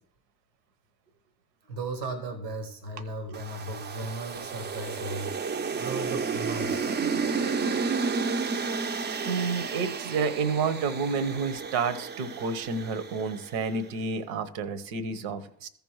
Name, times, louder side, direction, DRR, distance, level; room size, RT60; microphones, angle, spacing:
voice 1, 1.6-5.4 5.8-7.0, right 2 dB, 85° right, 5 dB, 1.4 m, -36 dB
sound 1, 3.3-13.7, right 5 dB, 20° right, 0.5 m, -32 dB
voice 2, 9.2-15.7, right 5 dB, 65° right, 13 dB, 1.0 m, -30 dB
15.0 x 5.4 x 3.1 m, 0.64 s
figure-of-eight pair, 50°, 50 cm